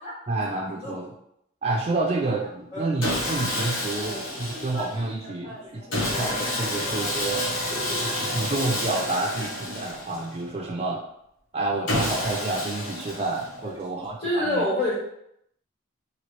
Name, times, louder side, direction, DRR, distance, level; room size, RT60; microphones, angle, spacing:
voice 1, 0.3-1.1 1.6-7.5 8.0-11.0 11.5-14.7, right 2 dB, 30° right, -2 dB, 0.3 m, -29 dB
Sawing, 3.0-5.1 5.9-10.4 11.9-13.7, left 1 dB, 80° left, 0.9 m, -29 dB
voice 2, 4.1-4.9 5.2-7.2 7.7-8.3 9.4-9.5 13.9-14.9, left 1 dB, 30° left, -7 dB, 1.5 m, -31 dB
3.0 x 2.8 x 2.9 m, 0.75 s
head